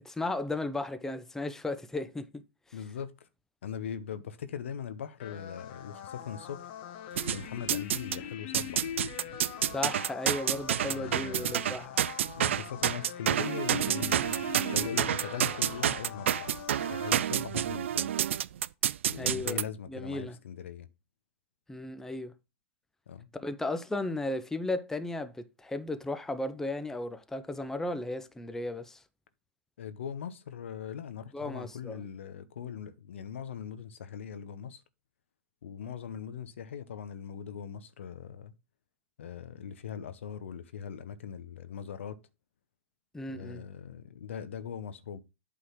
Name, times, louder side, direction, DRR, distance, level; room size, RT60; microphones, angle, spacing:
voice 1, 0.0-2.4 9.7-11.9 19.2-19.6 19.9-20.4 21.7-22.3 23.3-29.0 31.3-32.0 43.1-43.6, left 2 dB, 5° left, 0.7 m, -35 dB
voice 2, 2.7-3.3 3.6-6.7 7.3-8.9 10.8-11.6 12.4-16.5 16.9-18.1 19.1-20.9 23.1-23.3 29.8-34.8 35.6-38.5 39.2-42.2 43.3-45.2, left 8 dB, 75° left, 0.9 m, -40 dB
sound 1, 5.2-17.1, left 10 dB, 55° left, 1.3 m, -42 dB
sound 2, 7.2-8.2 8.5-19.6, right 10 dB, 75° right, 0.4 m, -29 dB
8.4 x 3.8 x 5.9 m
hypercardioid pair, 110°, 7 cm